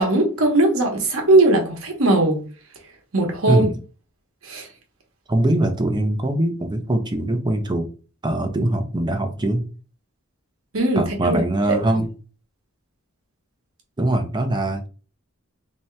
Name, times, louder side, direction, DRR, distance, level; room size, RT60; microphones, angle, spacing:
voice 1, 0.0-2.4 3.1-3.7 4.4-4.7 10.7-11.4 11.7-11.8, right 2 dB, 70° right, 1.1 m, -19 dB
voice 2, 5.3-7.9 8.2-9.6 11.0-12.1 14.0-14.9, right 1 dB, 20° right, 0.5 m, -22 dB
3.3 x 2.8 x 3.2 m
head